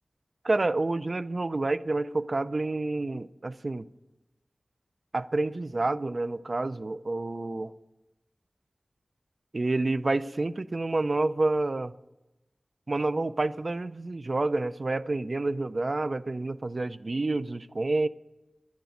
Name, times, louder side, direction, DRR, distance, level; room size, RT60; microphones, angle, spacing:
voice 1, 0.4-3.9 5.1-7.7 9.5-11.9 12.9-18.1, right 2 dB, 55° right, 0.5 m, -28 dB
11.0 x 9.6 x 9.1 m
wide cardioid pair, 45°, 0 cm